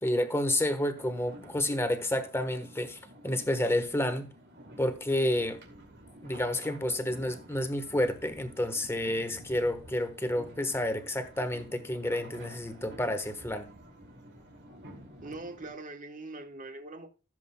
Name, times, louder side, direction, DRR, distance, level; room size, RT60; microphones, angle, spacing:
voice 1, 0.0-4.3 4.8-5.6 6.2-13.7, left 1 dB, 10° left, 1.2 m, -30 dB
sound 1, 1.0-15.7, right 1 dB, 55° right, 2.5 m, -51 dB
voice 2, 15.2-17.1, right 2 dB, 40° right, 1.2 m, -42 dB
15.5 x 7.6 x 2.2 m
head